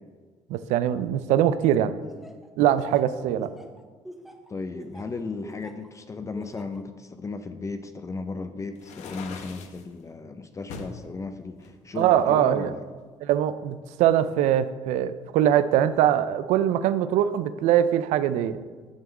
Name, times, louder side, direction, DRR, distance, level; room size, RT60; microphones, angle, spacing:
voice 1, 0.5-2.0 2.6-3.5 12.0-12.7 13.2-18.6, right 11 dB, 80° right, 13 dB, 0.4 m, -22 dB
Laughter, 2.0-5.9 6.4-6.8, equal, ahead, 0.9 m, -44 dB
voice 2, 4.5-12.8, left 3 dB, 25° left, 8 dB, 0.6 m, -35 dB
sound 1, 8.8-9.8 10.7-11.0 11.6-12.7, left 4 dB, 75° left, 0.9 m, -41 dB
8.9 x 3.6 x 6.9 m, 1.5 s
supercardioid pair, 90°, 12 cm